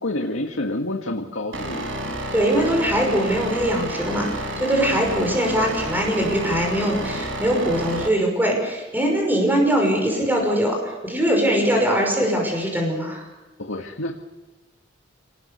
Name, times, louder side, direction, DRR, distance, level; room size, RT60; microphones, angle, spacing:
voice 1, 0.0-1.9 13.6-14.2, left 1 dB, 85° left, 2 dB, 1.9 m, -28 dB
sound 1, 1.5-8.1, right 1 dB, 80° right, 4.5 m, -30 dB
voice 2, 2.3-13.2, equal, 10° right, 1 dB, 5.8 m, -22 dB
28.0 x 19.5 x 6.8 m, 1.2 s
head